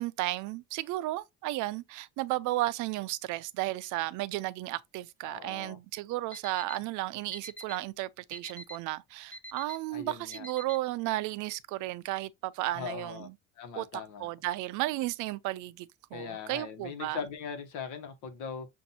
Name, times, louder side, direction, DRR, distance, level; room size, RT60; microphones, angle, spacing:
voice 1, 0.0-13.3 13.8-17.2, right 17 dB, 70° right, 0.5 m, -34 dB
voice 2, 5.2-5.8 9.9-10.5 12.7-13.3 13.6-14.3 16.1-18.7, left 6 dB, 70° left, 1.2 m, -40 dB
Alarm, 6.3-6.8 7.3-7.8 8.3-8.8 9.3-9.8 10.3-10.8, equal, 5° left, 0.3 m, -43 dB
7.1 x 2.6 x 2.7 m
cardioid pair, 135°, 31 cm